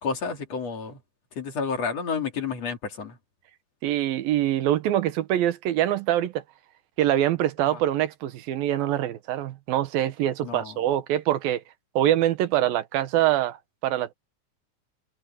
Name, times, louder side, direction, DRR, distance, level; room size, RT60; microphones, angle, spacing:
voice 1, 0.0-1.0 1.3-3.2 7.7-7.8 10.4-10.8, left 5 dB, 50° left, 3.6 m, -30 dB
voice 2, 3.8-6.4 7.0-11.6 12.0-13.6 13.8-14.1, right 12 dB, 85° right, 3.0 m, -24 dB
omnidirectional pair, 4.1 m